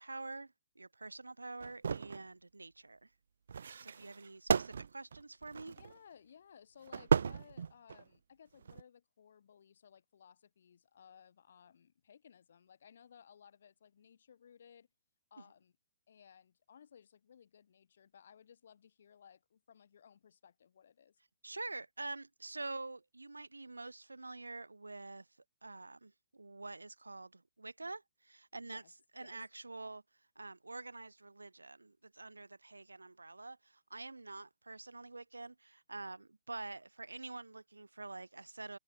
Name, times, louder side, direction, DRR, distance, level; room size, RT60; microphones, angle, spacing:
voice 1, 0.0-3.1 3.8-5.7 15.4-15.5 21.4-25.3 25.6-28.8 29.1-30.0 30.4-38.8, right 2 dB, 90° right, 0.9 m, -47 dB
sound 1, 1.6-2.2 3.5-6.0 6.9-8.1 8.6-8.8, right 6 dB, 70° right, 0.3 m, -34 dB
voice 2, 5.7-14.9 15.3-15.7 16.1-21.2 28.6-28.9 29.2-29.4, left 8 dB, 60° left, 7.3 m, -60 dB
figure-of-eight pair, 125°, 0 cm